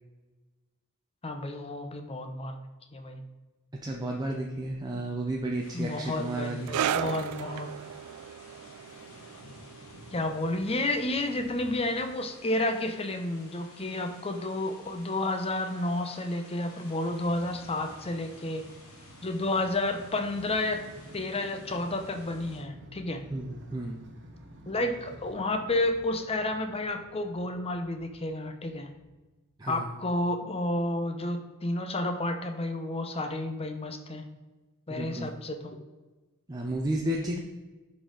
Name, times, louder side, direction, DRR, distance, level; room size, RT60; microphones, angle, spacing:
voice 1, 1.2-2.6 2.9-3.2 5.7-7.7 10.1-18.7 19.2-20.8 21.1-23.2 24.7-28.9 29.7-34.2 34.9-35.8, left 2 dB, 25° left, 6 dB, 0.8 m, -31 dB
voice 2, 3.8-6.7 23.3-24.0 29.6-30.0 34.9-35.3 36.5-37.4, right 1 dB, 20° right, 0 dB, 0.6 m, -32 dB
sound 1, 5.6-22.6, left 2 dB, 70° left, 1.8 m, -53 dB
sound 2, 6.7-13.7 13.9-14.2 14.9-15.0, right 9 dB, 85° right, 0.3 m, -36 dB
Motorcycle, 16.9-29.1, right 1 dB, 60° right, 1.3 m, -51 dB
11.0 x 4.3 x 3.9 m, 1.2 s
head